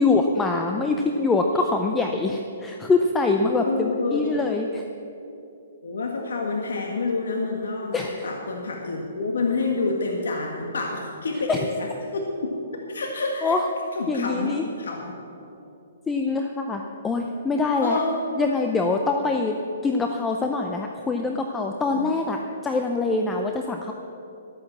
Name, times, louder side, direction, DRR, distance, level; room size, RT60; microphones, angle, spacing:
voice 1, 0.0-4.8 7.9-8.3 11.5-11.6 13.4-13.6 14.1-14.6 16.1-18.0 18.4-19.6 19.8-23.9, left 3 dB, 10° left, 3 dB, 0.5 m, -24 dB
voice 2, 3.6-4.5 5.8-12.5 12.9-13.6 13.9-15.1 17.8-18.5 21.9-22.1, left 3 dB, 90° left, 1 dB, 1.7 m, -28 dB
13.0 x 8.8 x 7.3 m, 2.8 s
hypercardioid pair, 165°, 0 cm